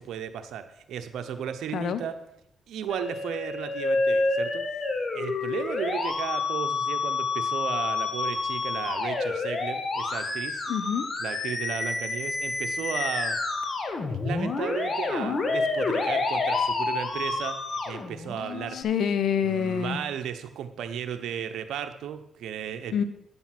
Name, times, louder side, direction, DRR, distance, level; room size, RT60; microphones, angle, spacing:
voice 1, 0.0-2.1 2.7-4.8 5.1-10.6 11.2-13.4 14.1-17.6 17.8-18.8 19.4-23.0, right 8 dB, 80° right, 8 dB, 0.9 m, -35 dB
Musical instrument, 2.9-18.8, left 3 dB, 50° left, 1.7 m, -29 dB
voice 2, 10.7-11.1 18.7-20.0 22.9-23.0, left 8 dB, 75° left, 12 dB, 0.7 m, -26 dB
9.6 x 7.1 x 5.9 m, 0.79 s
supercardioid pair, 60°, 0 cm